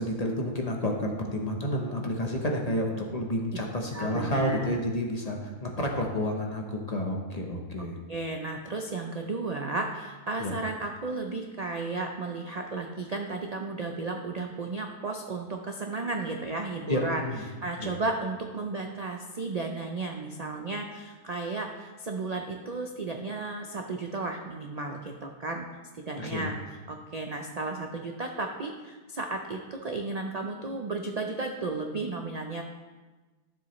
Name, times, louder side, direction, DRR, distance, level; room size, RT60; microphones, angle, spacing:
voice 1, 0.0-7.9 10.4-10.5 16.9-17.4 17.8-17.9 26.2-26.5, left 1 dB, 30° left, 1 dB, 0.9 m, -30 dB
voice 2, 3.9-4.8 7.8-17.2 17.6-25.7 25.9-32.6, right 3 dB, 55° right, 3 dB, 0.4 m, -34 dB
12.5 x 7.3 x 3.1 m, 1.3 s
omnidirectional pair, 1.6 m